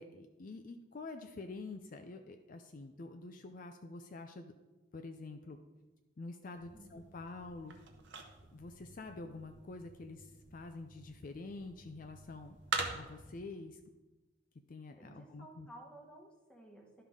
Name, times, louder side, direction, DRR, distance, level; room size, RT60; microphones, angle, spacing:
voice 1, 0.0-4.5 4.9-5.6 6.2-7.8 8.5-12.6 12.9-13.8 14.7-15.7, left 3 dB, 40° left, 6 dB, 0.4 m, -47 dB
sound 1, 6.6-13.4, right 4 dB, 60° right, 0.9 m, -45 dB
voice 2, 14.9-17.0, right 1 dB, 5° left, 0 dB, 1.1 m, -55 dB
12.0 x 5.6 x 3.6 m, 1.2 s
head